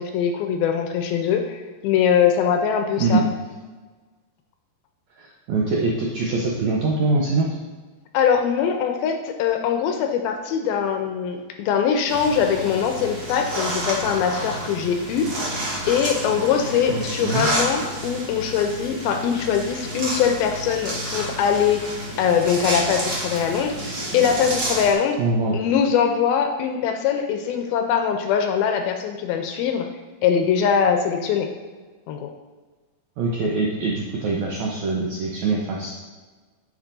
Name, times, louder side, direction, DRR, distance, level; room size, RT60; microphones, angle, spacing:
voice 1, 0.0-3.2 8.1-15.6 15.9-21.8 22.2-25.2 25.5-29.9 30.2-31.5 32.1-32.3, left 7 dB, 80° left, 4 dB, 2.4 m, -22 dB
voice 2, 5.2-7.5 16.9-17.5 25.2-25.6 33.2-35.9, right 3 dB, 90° right, -3 dB, 1.6 m, -23 dB
sound 1, 12.1-24.9, right 1 dB, 50° right, 1.3 m, -30 dB
10.5 x 8.1 x 2.6 m, 1.3 s
omnidirectional pair, 4.6 m